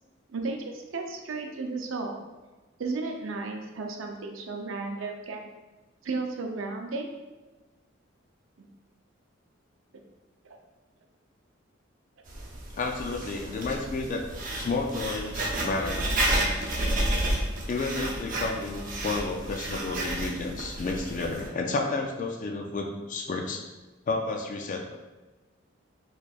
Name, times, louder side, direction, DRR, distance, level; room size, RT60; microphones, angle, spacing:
voice 1, 0.3-2.3 2.8-5.5 6.0-7.1 8.6-8.7 10.4-10.6, right 3 dB, 85° right, 3 dB, 0.5 m, -34 dB
Writing, 12.3-21.5, right 1 dB, 45° right, 0.7 m, -31 dB
voice 2, 12.8-14.3 14.6-16.1 17.7-23.6 24.1-25.0, left 3 dB, 40° left, 2 dB, 0.3 m, -31 dB
4.2 x 3.1 x 2.3 m, 1.2 s
head